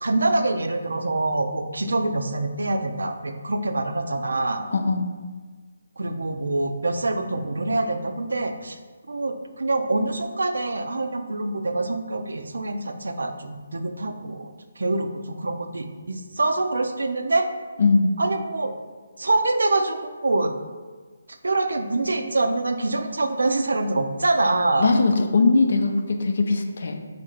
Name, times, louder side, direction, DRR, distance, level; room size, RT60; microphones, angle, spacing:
voice 1, 0.0-4.6 6.0-8.8 9.1-17.5 18.2-18.7 19.2-20.5 21.4-24.9, right 2 dB, 75° right, 7 dB, 0.4 m, -25 dB
voice 2, 4.7-5.1 17.8-18.1 24.8-27.0, left 3 dB, 60° left, 5 dB, 0.5 m, -20 dB
3.8 x 2.5 x 4.3 m, 1.4 s
figure-of-eight pair, 150°, 0 cm